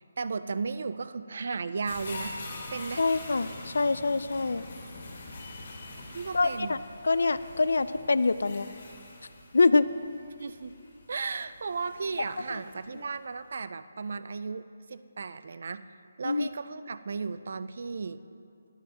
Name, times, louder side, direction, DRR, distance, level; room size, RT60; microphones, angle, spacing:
voice 1, 0.0-2.4 2.7-3.0 6.1-6.8 10.4-10.7 11.1-15.8 16.2-18.2, right 4 dB, 55° right, 13 dB, 0.3 m, -35 dB
sound 1, 1.9-13.1 13.5-13.6, left 2 dB, 45° left, 1.9 m, -45 dB
voice 2, 3.0-4.6 6.3-6.8 7.0-8.7 9.5-9.9 16.2-16.5, left 3 dB, 80° left, 14 dB, 0.3 m, -25 dB
11.5 x 11.5 x 2.9 m, 2.4 s
hypercardioid pair, 170°, 0 cm